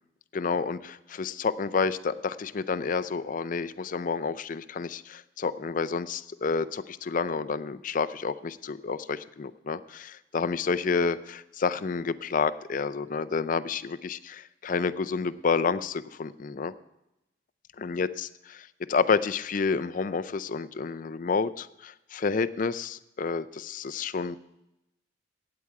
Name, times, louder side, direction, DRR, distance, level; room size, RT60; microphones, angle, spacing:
voice 1, 0.3-16.7 17.8-24.4, left 5 dB, 45° left, 14 dB, 0.4 m, -29 dB
15.5 x 8.8 x 4.7 m, 0.89 s
head